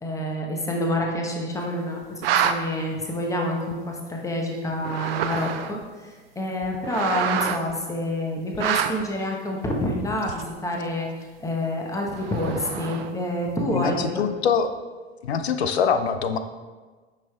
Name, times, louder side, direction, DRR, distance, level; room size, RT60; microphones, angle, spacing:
voice 1, 0.0-14.3, left 1 dB, 10° left, 0 dB, 1.0 m, -28 dB
sound 1, 2.0-2.5 3.7-3.8 4.7-5.8 6.6-7.7 8.5-9.0 10.3-10.6 12.1-13.3, right 9 dB, 60° right, 0.5 m, -27 dB
voice 2, 13.7-14.7 15.2-16.4, left 6 dB, 70° left, 9 dB, 0.6 m, -23 dB
8.9 x 5.6 x 2.3 m, 1.4 s
figure-of-eight pair, 80°, 33 cm